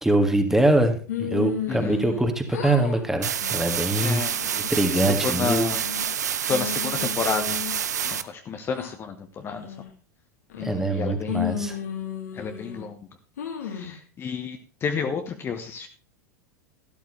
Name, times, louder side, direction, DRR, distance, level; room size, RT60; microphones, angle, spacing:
voice 1, 0.0-4.2 4.7-5.6 10.6-11.8, right 1 dB, 5° right, 5 dB, 2.0 m, -23 dB
sound 1, 1.1-2.2 2.5-3.0 3.4-3.8 4.3-4.8 5.3-6.1 6.5-8.2 8.7-8.9 9.5-9.9 10.5-11.0 11.3-12.9 13.4-14.0, left 9 dB, 65° left, 2.3 m, -34 dB
voice 2, 1.7-2.0 4.0-4.3 5.1-5.8 6.5-7.6 8.2-9.7 10.6-11.6 12.3-13.1 13.6-15.9, left 6 dB, 25° left, 6 dB, 1.1 m, -30 dB
sound 2, 3.2-8.2, right 8 dB, 70° right, 0.7 m, -28 dB
13.0 x 12.5 x 3.2 m, 0.37 s
figure-of-eight pair, 85°, 9 cm